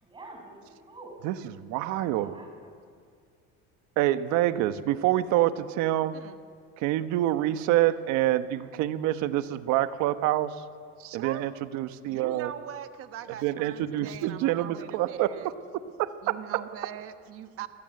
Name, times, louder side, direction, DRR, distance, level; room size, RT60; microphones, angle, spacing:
voice 1, 0.0-1.2 1.7-2.7, right 2 dB, 15° right, 2 dB, 6.2 m, -47 dB
voice 2, 1.2-2.3 4.0-6.2 6.8-10.6 11.1-12.5 13.4-15.5 16.0-16.4, right 14 dB, 65° right, 10 dB, 1.4 m, -26 dB
voice 3, 11.0-11.5 12.1-15.5 16.2-17.7, right 10 dB, 45° right, 9 dB, 1.3 m, -41 dB
28.5 x 22.0 x 7.9 m, 2.2 s
cardioid pair, 145°, 31 cm